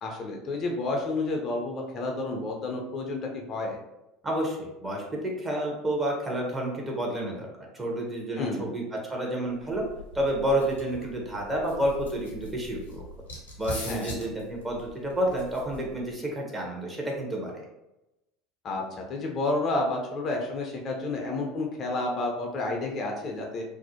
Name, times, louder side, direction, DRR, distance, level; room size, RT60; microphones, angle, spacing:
voice 1, 0.0-3.8 8.4-8.6 13.9-14.1 18.6-18.8 19.1-23.6, left 2 dB, 40° left, 1 dB, 0.5 m, -30 dB
voice 2, 4.2-7.5 7.7-9.8 10.1-13.0 13.6-17.6, right 1 dB, 15° right, -2 dB, 0.8 m, -30 dB
sound 1, 9.5-16.1, left 1 dB, 80° left, 0.6 m, -42 dB
2.4 x 2.0 x 2.7 m, 0.92 s
figure-of-eight pair, 70°, 0 cm